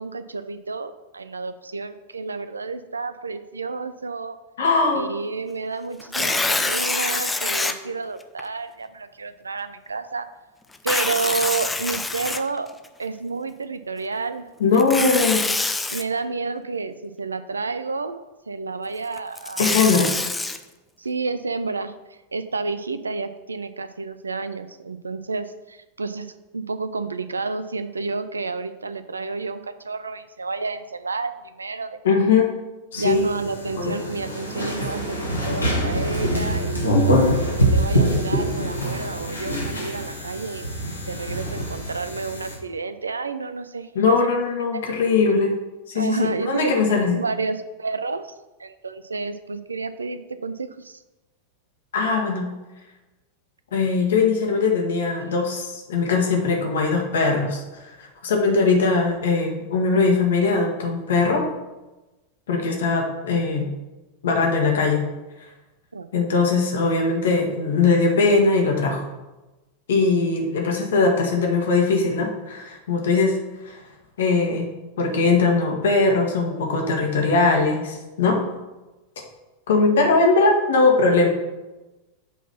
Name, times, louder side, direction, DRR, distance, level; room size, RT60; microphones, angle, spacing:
voice 1, 0.0-4.4 4.9-10.3 10.8-12.7 13.0-14.5 14.7-15.3 15.9-19.8 21.0-21.9 22.3-32.0 33.0-37.1 37.6-40.7 41.1-44.3 44.7-44.8 45.9-48.3 48.6-51.0 65.9-66.1, right 4 dB, 75° right, 12 dB, 0.5 m, -30 dB
voice 2, 4.6-5.1 14.6-15.4 19.6-20.1 32.0-32.5 32.9-33.2 33.8-34.0 43.9-45.5 45.9-47.2 51.9-52.5 53.7-57.6 58.0-61.4 62.5-63.7 64.2-65.0 66.1-69.0 69.9-73.4 73.6-73.8 74.2-74.7 75.0-78.4 79.7-81.3, left 4 dB, 60° left, 1 dB, 1.6 m, -20 dB
Tearing, 6.0-7.7 8.4-8.5 10.7-12.9 14.7-16.0 19.2-20.6, left 3 dB, 10° left, 0.6 m, -25 dB
sound 1, 32.9-42.5, equal, 85° left, 1.6 m, -24 dB
8.2 x 4.0 x 5.8 m, 1.1 s
figure-of-eight pair, 90°, 0 cm